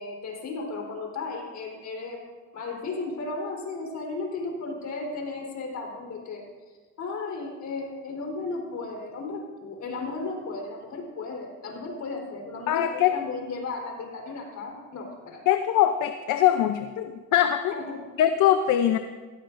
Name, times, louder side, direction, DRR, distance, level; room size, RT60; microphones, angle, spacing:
voice 1, 0.0-2.3 2.5-6.4 7.0-15.4 17.7-18.0, left 3 dB, 65° left, 0 dB, 3.8 m, -35 dB
voice 2, 12.7-13.1 15.5-17.7 18.2-19.0, left 11 dB, 85° left, 8 dB, 0.6 m, -22 dB
16.5 x 15.5 x 2.6 m, 1.4 s
cardioid pair, 90°, 30 cm